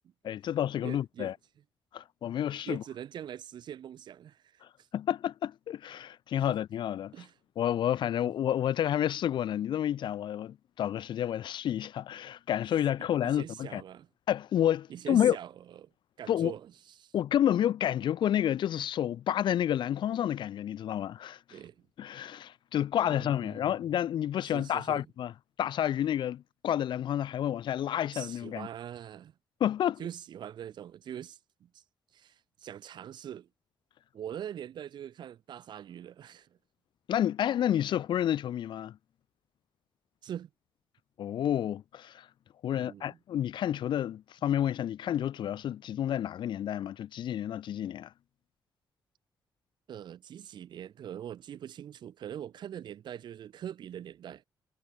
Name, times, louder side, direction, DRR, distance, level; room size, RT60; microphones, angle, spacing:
voice 1, 0.2-1.3 1.9-2.8 4.9-7.1 7.6-13.8 14.3-15.4 16.3-16.5 17.1-21.4 22.0-25.3 25.6-28.7 29.6-30.0 37.1-39.0 41.2-42.3 42.6-48.1, left 10 dB, 70° left, 2.3 m, -30 dB
voice 2, 0.8-1.3 2.7-4.9 6.5-6.6 7.1-7.4 13.0-14.1 14.9-15.5 15.8-15.9 16.2-17.1 21.5-21.8 23.1-23.8 24.4-25.1 28.1-29.3 30.0-31.8 32.1-33.5 34.1-36.5 40.2-40.5 42.7-43.2 49.9-54.4, right 10 dB, 65° right, 5.2 m, -43 dB
wide cardioid pair, 165°, 8 cm